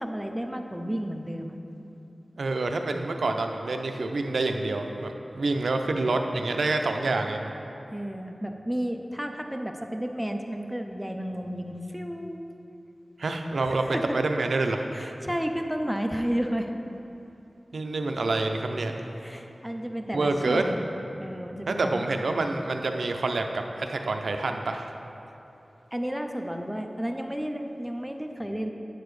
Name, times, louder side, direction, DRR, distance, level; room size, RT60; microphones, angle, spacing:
voice 1, 0.0-1.6 7.9-12.4 13.6-14.2 14.9-16.7 19.2-20.8 21.2-22.1 25.9-28.7, equal, 5° right, 4 dB, 0.5 m, -32 dB
voice 2, 2.4-7.7 13.2-14.9 17.7-18.9 20.1-20.7 21.7-24.9, right 2 dB, 90° right, 5 dB, 0.4 m, -27 dB
9.0 x 6.8 x 3.2 m, 2.9 s
wide cardioid pair, 50°, 0 cm